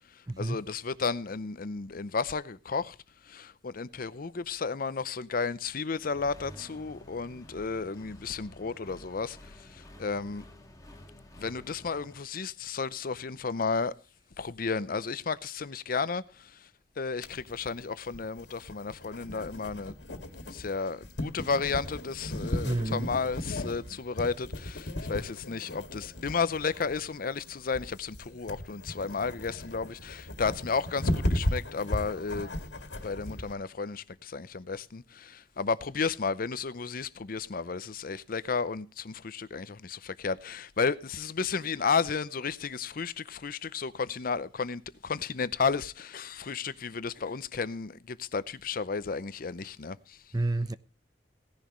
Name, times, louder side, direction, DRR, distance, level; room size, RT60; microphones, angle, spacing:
voice 1, 0.1-3.0 3.2-10.4 11.4-13.9 14.4-16.7 17.0-20.0 20.4-32.6 33.0-50.2, left 5 dB, 55° left, 0.6 m, -33 dB
Accelerating revving vroom, 6.0-12.2, equal, 20° left, 1.9 m, -51 dB
sound 1, 17.2-33.5, left 1 dB, 85° left, 2.1 m, -36 dB
voice 2, 22.6-23.1 50.3-50.7, right 2 dB, 20° right, 0.6 m, -29 dB
17.5 x 10.5 x 3.0 m
head